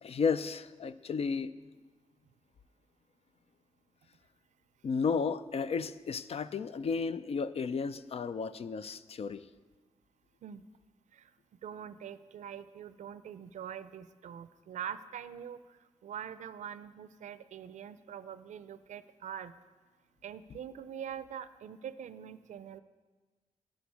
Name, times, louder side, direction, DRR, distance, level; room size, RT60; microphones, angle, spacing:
voice 1, 0.0-1.5 4.8-9.4, left 5 dB, 55° left, 14 dB, 0.4 m, -33 dB
voice 2, 11.6-15.6 16.0-19.5 20.2-22.8, right 8 dB, 85° right, 14 dB, 0.5 m, -44 dB
11.5 x 5.1 x 8.3 m, 1.3 s
cardioid pair, 80°, 12 cm